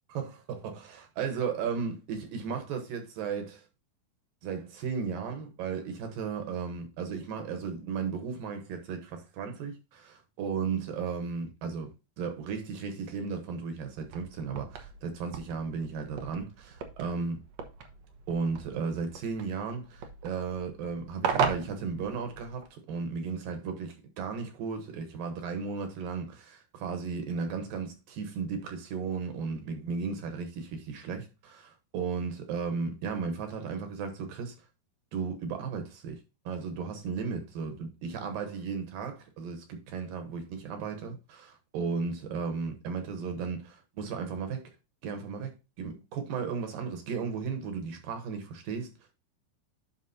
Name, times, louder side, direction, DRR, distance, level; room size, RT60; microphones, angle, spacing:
voice 1, 0.1-3.6 4.4-17.4 18.3-34.5 35.1-36.2 36.5-41.5 41.7-44.6 45.0-49.1, right 5 dB, 70° right, 2.4 m, -35 dB
sound 1, 14.0-22.7, right 6 dB, 90° right, 1.4 m, -37 dB
9.7 x 6.0 x 2.7 m
omnidirectional pair, 4.7 m